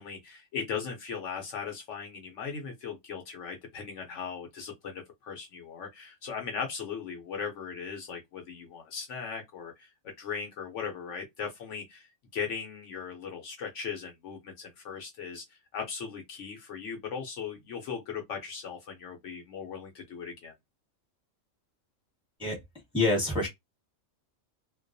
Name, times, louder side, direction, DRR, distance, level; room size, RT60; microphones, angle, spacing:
voice 1, 0.0-9.9 10.2-12.1 12.3-20.5, left 6 dB, 70° left, 0.9 m, -38 dB
voice 2, 22.9-23.5, left 2 dB, 5° right, 1.0 m, -26 dB
2.3 x 2.2 x 2.5 m
omnidirectional pair, 1.4 m